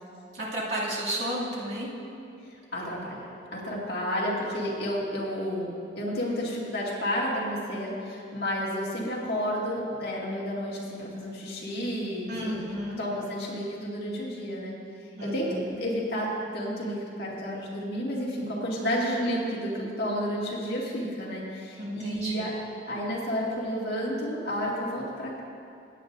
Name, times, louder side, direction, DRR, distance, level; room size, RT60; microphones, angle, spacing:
voice 1, 0.3-1.9 12.3-13.0 15.1-15.8 21.8-22.5, equal, 60° right, -7 dB, 2.5 m, -32 dB
voice 2, 2.7-3.2 3.5-5.7 6.0-12.6 13.0-14.7 15.2-22.5 22.9-25.4, equal, 55° left, -5 dB, 2.1 m, -31 dB
16.5 x 9.3 x 2.6 m, 2.6 s
head